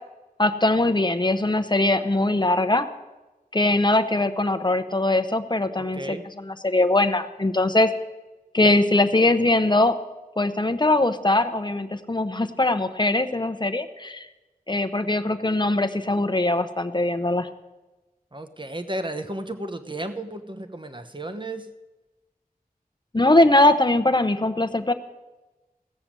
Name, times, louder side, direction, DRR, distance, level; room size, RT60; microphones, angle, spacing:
voice 1, 0.4-2.9 3.5-7.9 8.5-10.0 10.4-14.3 14.7-17.5 23.1-24.9, left 2 dB, 30° left, 10 dB, 0.8 m, -21 dB
voice 2, 5.9-6.2 18.3-21.7, right 1 dB, 30° right, 8 dB, 1.0 m, -33 dB
16.0 x 6.8 x 7.4 m, 1.1 s
wide cardioid pair, 45°, 15 cm